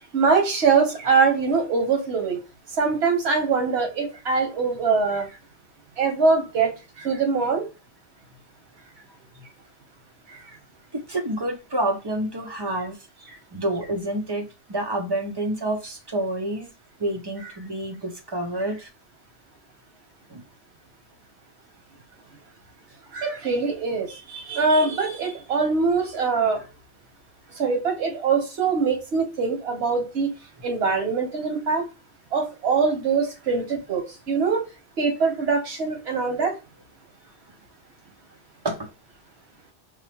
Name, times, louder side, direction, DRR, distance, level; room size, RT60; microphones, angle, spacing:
voice 1, 0.1-2.4 2.8-5.3 6.0-6.7 7.0-7.7 10.3-10.4 23.1-26.6 27.6-30.3 30.6-31.9 32.3-34.6 35.0-36.5, right 4 dB, 90° right, 1.2 m, -23 dB
voice 2, 10.9-13.0 13.5-16.7 17.0-18.9 20.3-20.4 38.6-38.9, right 1 dB, 30° right, 0.6 m, -28 dB
4.8 x 2.0 x 2.9 m
omnidirectional pair, 1.0 m